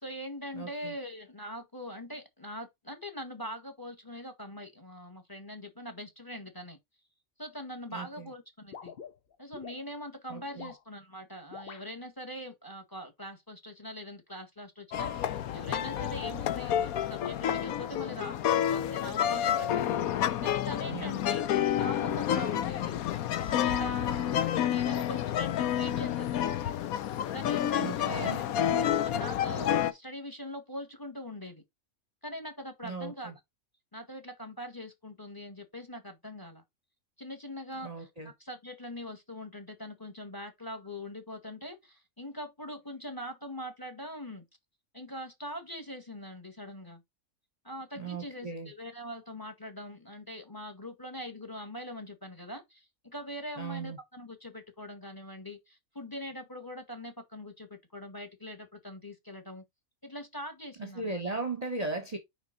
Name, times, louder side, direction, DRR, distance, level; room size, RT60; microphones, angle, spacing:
voice 1, 0.0-6.8 7.4-8.9 9.4-19.9 20.4-26.6 27.3-28.5 28.8-31.6 32.2-33.3 33.9-36.6 37.2-44.4 44.9-47.0 47.6-59.6 60.0-61.2, equal, 15° left, 1.7 m, -42 dB
voice 2, 0.5-0.9 7.9-8.3 10.3-10.7 20.8-21.1 27.8-28.4 32.8-33.3 37.8-38.3 48.0-48.7 53.6-54.0 60.8-62.2, right 3 dB, 30° right, 1.1 m, -37 dB
sound 1, 8.7-9.8 10.4-10.8 11.5-11.9, left 7 dB, 45° left, 1.0 m, -46 dB
sound 2, 14.9-29.9, left 10 dB, 85° left, 1.2 m, -29 dB
5.9 x 5.2 x 4.0 m
omnidirectional pair, 1.5 m